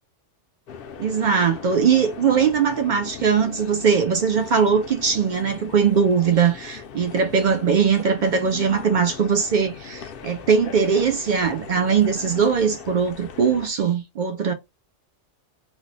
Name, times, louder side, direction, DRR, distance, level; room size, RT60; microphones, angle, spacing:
sound 1, 0.7-13.7, left 7 dB, 60° left, 0.6 m, -39 dB
voice 1, 1.0-14.5, right 6 dB, 60° right, 0.5 m, -20 dB
3.1 x 2.0 x 3.9 m
omnidirectional pair, 1.2 m